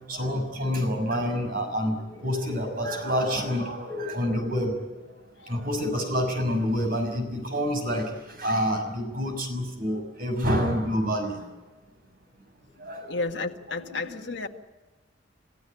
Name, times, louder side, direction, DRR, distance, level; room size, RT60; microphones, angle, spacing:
voice 1, 0.1-4.8 5.5-11.4 12.8-13.2 13.8-14.5, equal, 45° right, 6.4 m, -28 dB
voice 2, 13.1-14.5, left 3 dB, 65° left, 1.8 m, -31 dB
29.5 x 16.0 x 9.0 m
head